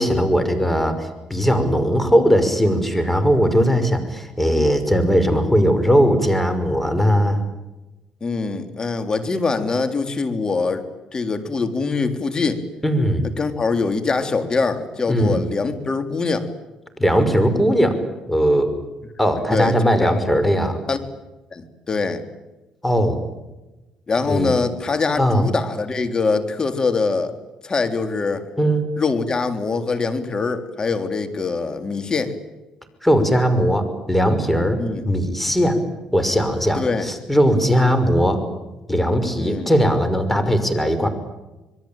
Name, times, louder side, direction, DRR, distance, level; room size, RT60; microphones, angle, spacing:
voice 1, 0.0-7.4 12.8-13.3 15.1-15.4 17.0-18.0 18.3-18.7 19.2-20.8 22.8-23.2 24.2-24.5 25.2-25.5 28.6-28.8 33.0-34.8 35.0-35.8 36.1-38.4 38.9-41.1, equal, 5° left, 9 dB, 5.8 m, -19 dB
voice 2, 8.2-10.9 11.1-12.6 13.4-16.5 19.5-19.7 20.0-20.2 20.9-21.0 21.5-22.2 24.1-27.4 27.6-28.4 29.0-32.3 34.8-35.1 36.8-37.1 39.4-39.7, left 4 dB, 35° left, 8 dB, 3.7 m, -23 dB
26.5 x 22.5 x 9.0 m, 1.1 s
supercardioid pair, 80°, 2 cm